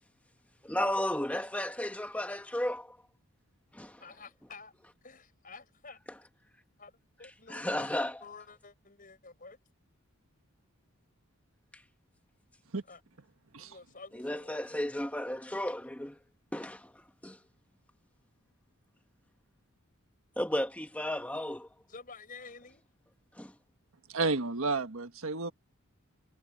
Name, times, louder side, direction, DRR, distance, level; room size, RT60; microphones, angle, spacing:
voice 1, 0.6-3.0 3.7-4.0 7.5-8.2 14.1-16.2 16.5-16.9 17.2-17.4 20.4-21.7 23.4-23.5, left 1 dB, 5° left, 1.2 m, -33 dB
voice 2, 4.0-4.7 5.0-6.0 6.8-6.9 7.2-7.9 8.2-9.6 12.9-13.0 13.6-14.9 21.9-22.9, left 4 dB, 40° left, 6.4 m, -50 dB
voice 3, 24.1-25.5, right 3 dB, 70° right, 1.5 m, -31 dB
head